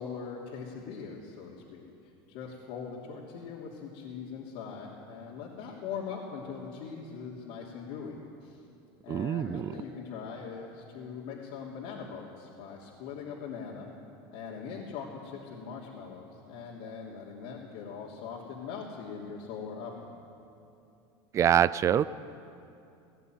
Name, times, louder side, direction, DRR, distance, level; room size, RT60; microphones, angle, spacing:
voice 1, 0.0-1.8 2.3-8.6 9.0-13.9 14.3-20.1, left 6 dB, 60° left, -5 dB, 3.1 m, -41 dB
voice 2, 9.1-9.7 21.3-22.1, right 9 dB, 25° right, 18 dB, 0.4 m, -25 dB
18.5 x 18.0 x 9.3 m, 2.7 s
supercardioid pair, 155°, 12 cm